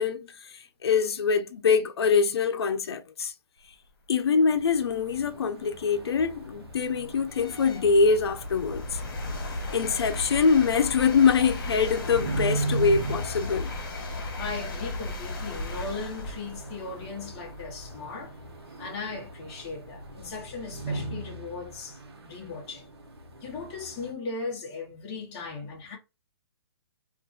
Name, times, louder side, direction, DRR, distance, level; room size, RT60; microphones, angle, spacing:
voice 1, 0.0-3.3 4.1-9.0 9.7-13.7, left 5 dB, 75° left, 0.6 m, -24 dB
sound 1, 4.4-24.1, right 2 dB, 75° right, 1.0 m, -39 dB
sound 2, 4.9-5.0 5.6-20.4, left 2 dB, 50° left, 1.2 m, -37 dB
voice 2, 14.4-18.4 18.8-22.0 22.3-22.9 23.4-26.0, left 4 dB, 20° left, 0.9 m, -37 dB
2.5 x 2.3 x 3.8 m
hypercardioid pair, 170°, 13 cm